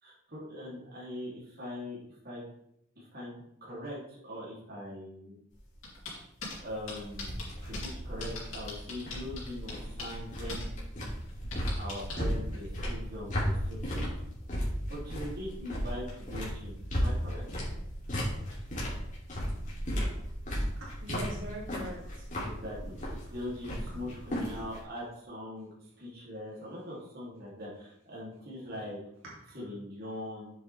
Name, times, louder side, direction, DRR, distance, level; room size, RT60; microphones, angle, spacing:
voice 1, 0.0-2.0 2.2-2.4 2.9-5.4 6.6-10.7 11.8-14.1 14.9-17.4 22.4-25.7 26.0-29.0 29.5-30.5, left 1 dB, 50° right, -6 dB, 2.9 m, -41 dB
sound 1, 5.5-24.8, equal, 40° left, 2.8 m, -35 dB
sound 2, 5.8-6.6 6.9-7.9 8.2-10.2 10.5-10.6 11.0-12.2, left 4 dB, 75° left, 2.9 m, -40 dB
voice 2, 20.8-22.3 22.8-23.1 23.9-24.0 29.3-29.4, right 1 dB, 70° right, -6 dB, 2.8 m, -43 dB
7.7 x 7.4 x 3.4 m, 0.76 s
head